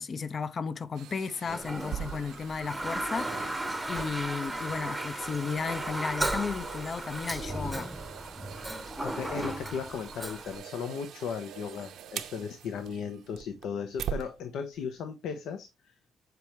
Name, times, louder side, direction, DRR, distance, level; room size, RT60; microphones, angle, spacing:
voice 1, 0.0-7.9, left 5 dB, 40° left, 0.6 m, -34 dB
sound 1, 1.0-14.3 14.8-14.9, right 9 dB, 75° right, 0.7 m, -43 dB
Toilet flush, 1.4-10.6, right 1 dB, 5° right, 0.8 m, -35 dB
voice 2, 9.0-15.9, left 6 dB, 80° left, 0.8 m, -36 dB
6.9 x 4.5 x 3.1 m
cardioid pair, 90°, 0 cm